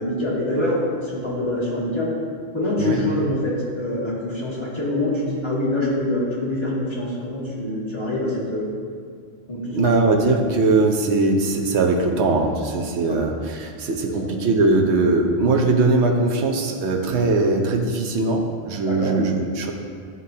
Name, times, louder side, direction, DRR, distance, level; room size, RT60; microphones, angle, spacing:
voice 1, 0.0-2.1 2.5-8.7 9.5-10.0 13.1-13.2 14.1-14.3 18.9-19.2, left 1 dB, 25° left, -7 dB, 1.6 m, -25 dB
voice 2, 9.6-19.7, right 3 dB, 85° right, 1 dB, 1.0 m, -20 dB
11.0 x 3.9 x 2.7 m, 2.1 s
omnidirectional pair, 1.1 m